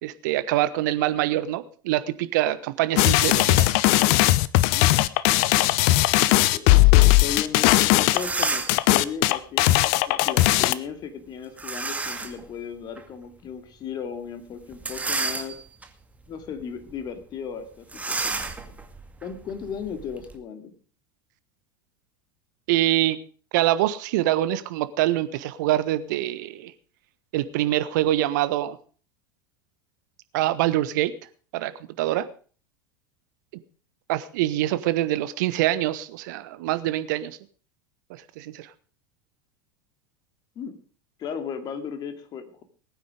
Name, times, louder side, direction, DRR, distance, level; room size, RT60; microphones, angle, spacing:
voice 1, 0.0-3.7 22.7-23.2 23.5-26.7 27.3-28.8 30.3-31.1 31.5-31.7 32.0-32.3 34.1-37.4 38.1-38.7, right 14 dB, 60° right, 13 dB, 1.3 m, -25 dB
sound 1, 3.0-10.7, left 18 dB, 55° left, 0.8 m, -18 dB
voice 2, 6.5-9.7 10.1-15.6 16.3-18.8 19.2-20.7 40.6-40.8 41.2-42.6, left 7 dB, 40° left, 8 dB, 2.5 m, -36 dB
sound 2, 8.0-8.9 11.6-12.4 13.0-13.1 14.7-15.9 16.4-16.6 16.9-17.0 17.9-20.4, right 3 dB, 15° right, 2.1 m, -31 dB
20.0 x 9.3 x 5.0 m, 0.41 s
figure-of-eight pair, 80°, 11 cm